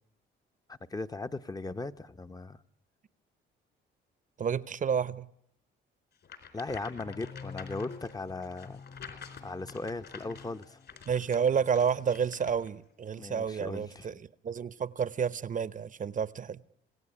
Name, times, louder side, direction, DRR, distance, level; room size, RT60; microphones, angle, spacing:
voice 1, 0.7-2.6 6.5-8.8 9.4-10.8 13.2-14.2, left 3 dB, 20° left, 0.8 m, -38 dB
voice 2, 4.4-5.3 11.1-14.1 14.4-16.6, right 7 dB, 40° right, 0.8 m, -30 dB
sound 1, 6.2-12.7, left 7 dB, 60° left, 4.4 m, -49 dB
sound 2, 7.0-11.5, left 4 dB, 40° left, 1.6 m, -48 dB
26.0 x 17.0 x 9.9 m
cardioid pair, 90°, 20 cm